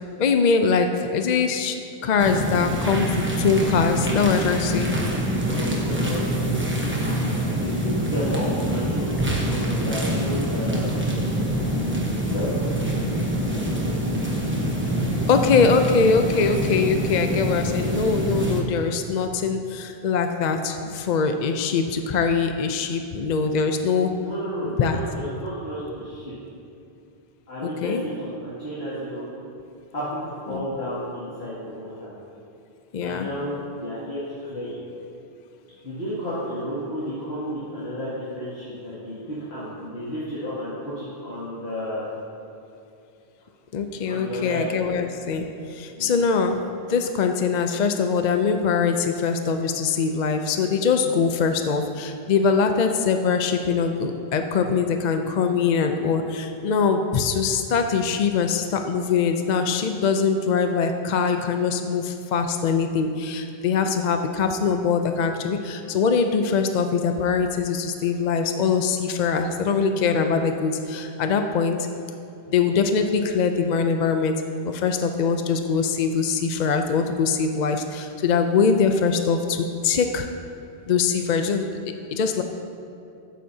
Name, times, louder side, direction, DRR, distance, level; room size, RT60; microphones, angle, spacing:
voice 1, 0.2-1.8 2.0-5.0 15.3-24.2 24.6-25.0 27.6-28.0 30.5-30.6 32.9-33.3 43.7-46.6 46.9-71.9 72.5-80.3 80.9-81.6 82.1-82.4, left 5 dB, 55° left, 6 dB, 0.6 m, -22 dB
sound 1, 2.2-18.6, right 1 dB, 10° right, 1.0 m, -25 dB
voice 2, 5.4-6.6 7.5-11.0 12.2-12.6 24.2-26.3 27.5-29.2 29.9-32.1 33.0-34.8 35.8-42.1 44.1-44.6 46.0-46.2, equal, 85° left, -11 dB, 2.6 m, -32 dB
14.0 x 10.0 x 2.7 m, 2.6 s
omnidirectional pair, 1.0 m